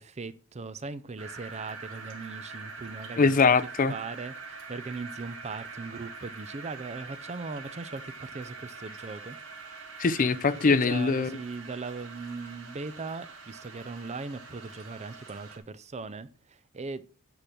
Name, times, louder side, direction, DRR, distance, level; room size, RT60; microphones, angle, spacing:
voice 1, 0.0-3.3 3.9-9.4 10.6-17.0, right 4 dB, 30° right, 0.5 m, -39 dB
sound 1, 1.2-15.6, right 4 dB, 75° right, 1.8 m, -44 dB
voice 2, 3.2-3.9 10.0-11.4, left 4 dB, 40° left, 0.5 m, -22 dB
9.8 x 3.9 x 5.9 m
head